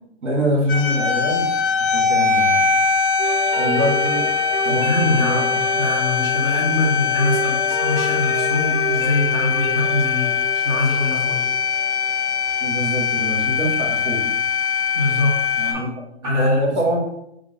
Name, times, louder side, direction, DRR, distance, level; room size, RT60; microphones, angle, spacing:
voice 1, 0.2-1.5 1.9-2.6 3.5-4.3 4.6-5.6 12.6-14.3 15.5-15.9 16.2-17.0, equal, 85° right, -1 dB, 1.4 m, -24 dB
sound 1, 0.7-15.7, left 6 dB, 50° left, 0.7 m, -21 dB
sound 2, 3.2-12.9, right 3 dB, 45° right, 0.9 m, -30 dB
voice 2, 4.6-5.4 5.8-11.4 14.9-15.8 16.2-16.6, left 2 dB, 10° right, -3 dB, 0.6 m, -23 dB
3.5 x 2.5 x 3.4 m, 0.80 s
hypercardioid pair, 145°, 35 cm